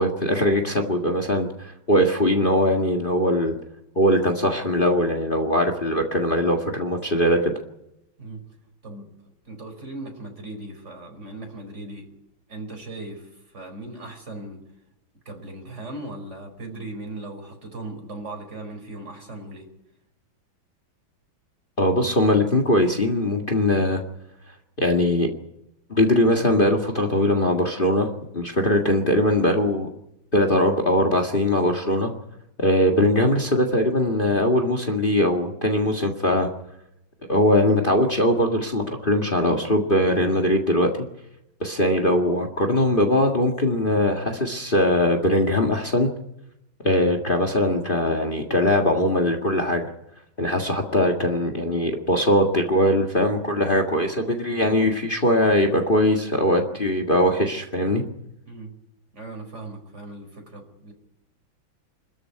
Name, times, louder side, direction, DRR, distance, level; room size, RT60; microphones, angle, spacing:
voice 1, 0.0-3.6 4.0-7.5 21.8-24.0 24.8-25.3 25.9-29.9 30.3-32.1 32.6-36.5 37.3-40.9 41.6-46.1 46.8-49.9 50.4-58.0, left 1 dB, 25° left, 5 dB, 1.9 m, -21 dB
voice 2, 8.8-9.2 9.4-12.1 12.5-14.7 15.2-19.7 58.4-58.7 59.1-60.9, right 2 dB, 35° right, 3 dB, 5.1 m, -38 dB
25.5 x 14.0 x 9.8 m, 0.85 s
omnidirectional pair, 2.2 m